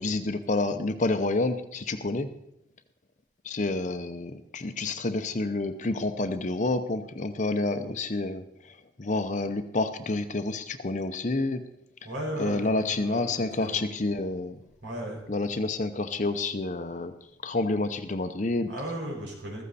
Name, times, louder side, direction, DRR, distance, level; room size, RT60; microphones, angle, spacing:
voice 1, 0.0-2.3 3.4-11.7 12.4-14.6 15.3-17.1 17.4-18.7, left 2 dB, 40° left, 8 dB, 0.7 m, -29 dB
voice 2, 12.0-13.8 14.8-15.2 18.7-19.6, right 1 dB, 85° right, -1 dB, 5.0 m, -35 dB
15.0 x 14.0 x 4.2 m, 0.78 s
head